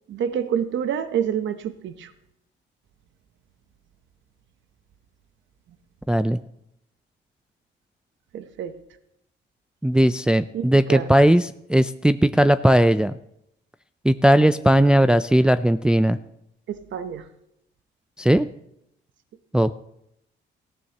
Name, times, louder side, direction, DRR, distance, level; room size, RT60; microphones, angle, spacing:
voice 1, 0.1-2.1 8.3-8.7 10.5-11.1 16.7-17.2, right 8 dB, 70° right, 10 dB, 0.9 m, -27 dB
voice 2, 6.1-6.4 9.8-13.1 14.0-16.2 18.2-18.5 19.5-19.8, right 1 dB, 5° right, 10 dB, 0.4 m, -18 dB
18.5 x 14.0 x 2.9 m, 0.80 s
cardioid pair, 90°, 20 cm